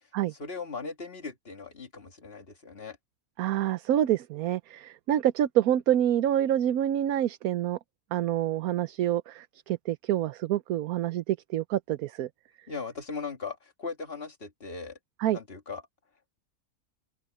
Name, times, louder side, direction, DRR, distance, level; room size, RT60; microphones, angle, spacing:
voice 1, 0.3-3.0 12.7-15.0 15.3-15.8, left 4 dB, 35° left, 2.3 m, -38 dB
voice 2, 3.4-7.8 8.1-12.3 15.2-15.4, right 11 dB, 70° right, 1.1 m, -27 dB
open air
omnidirectional pair, 1.7 m